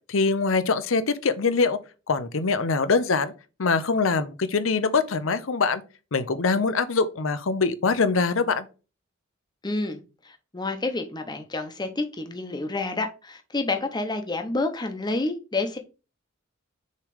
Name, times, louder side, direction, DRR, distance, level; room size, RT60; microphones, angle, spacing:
voice 1, 0.1-1.8 2.1-3.3 3.6-5.8 6.1-8.7, left 4 dB, 75° left, 0.7 m, -23 dB
voice 2, 9.6-10.0 10.2-15.8, left 2 dB, 20° left, 0.9 m, -29 dB
6.7 x 3.3 x 4.9 m
head